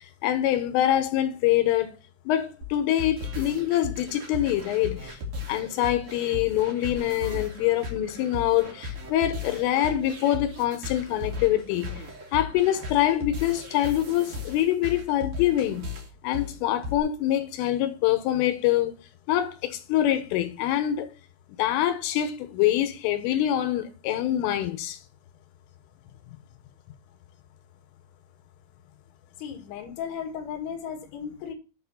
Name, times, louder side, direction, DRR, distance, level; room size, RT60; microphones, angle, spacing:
voice 1, 0.2-1.9 2.3-5.0 5.5-11.9 12.3-15.9 16.2-19.0 19.3-21.1 21.6-25.0, left 12 dB, 80° left, 3.4 m, -25 dB
sound 1, 2.6-17.0, left 3 dB, 40° right, 2.1 m, -37 dB
voice 2, 29.4-31.5, left 7 dB, 60° left, 3.5 m, -35 dB
8.9 x 4.8 x 6.6 m
omnidirectional pair, 6.0 m